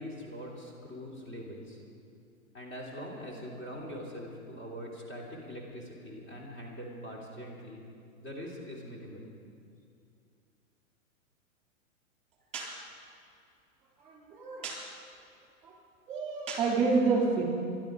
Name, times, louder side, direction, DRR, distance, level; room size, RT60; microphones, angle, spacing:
voice 1, 0.0-1.8 2.5-7.8 8.2-9.3, equal, 30° left, -3 dB, 3.2 m, -43 dB
voice 2, 14.0-14.9 15.6-15.7 16.1-17.4, right 4 dB, 15° right, -2 dB, 3.7 m, -29 dB
22.5 x 12.0 x 5.1 m, 2.5 s
hypercardioid pair, 135°, 41 cm